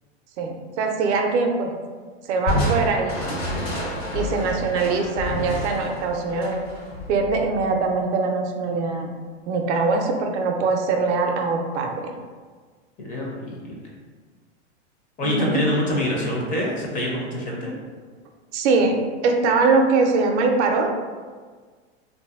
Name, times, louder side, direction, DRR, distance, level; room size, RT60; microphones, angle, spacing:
voice 1, 0.4-1.7 2.3-3.4 4.1-6.7 7.1-9.1 9.5-11.9 15.2-15.6 18.5-19.0 19.2-20.9, right 4 dB, 75° right, 3 dB, 0.5 m, -22 dB
Crushing, 2.5-7.9, left 1 dB, 70° left, 1.4 m, -29 dB
voice 2, 13.0-13.8 15.2-17.7, left 1 dB, 25° left, -3 dB, 0.5 m, -26 dB
2.6 x 2.5 x 2.4 m, 1.5 s
hypercardioid pair, 125°, 35 cm